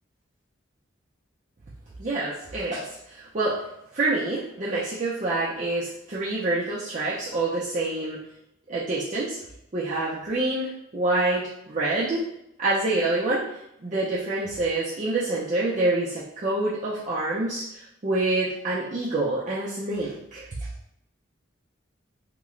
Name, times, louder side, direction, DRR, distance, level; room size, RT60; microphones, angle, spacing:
voice 1, 2.0-3.5 3.9-8.2 8.7-9.4 9.7-12.2 12.6-20.5, right 2 dB, 40° right, -8 dB, 0.5 m, -27 dB
2.9 x 2.1 x 3.7 m, 0.80 s
head